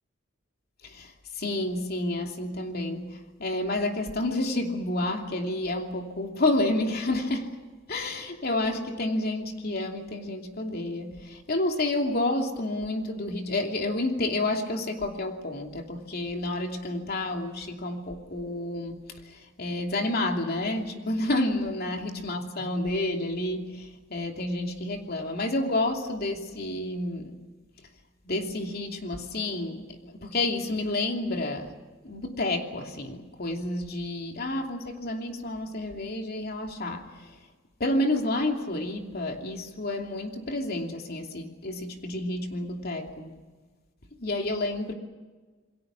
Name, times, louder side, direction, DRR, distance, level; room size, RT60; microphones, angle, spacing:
voice 1, 0.8-7.6 7.9-27.4 28.2-31.8 32.0-37.4 37.8-43.3 44.2-44.9, left 2 dB, 55° left, 3 dB, 2.9 m, -30 dB
28.0 x 22.0 x 6.1 m, 1.3 s
head